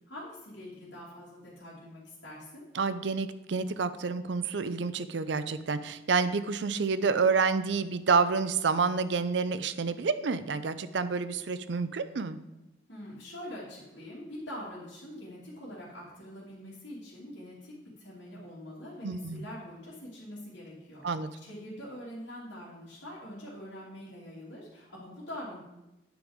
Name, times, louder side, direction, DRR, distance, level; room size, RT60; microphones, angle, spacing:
voice 1, 0.1-2.6 12.9-17.7 18.0-25.6, left 1 dB, 80° left, -7 dB, 2.7 m, -44 dB
voice 2, 2.7-12.4 19.0-19.4 21.0-21.3, right 5 dB, 80° right, 13 dB, 0.5 m, -28 dB
9.1 x 5.3 x 5.0 m, 0.94 s
head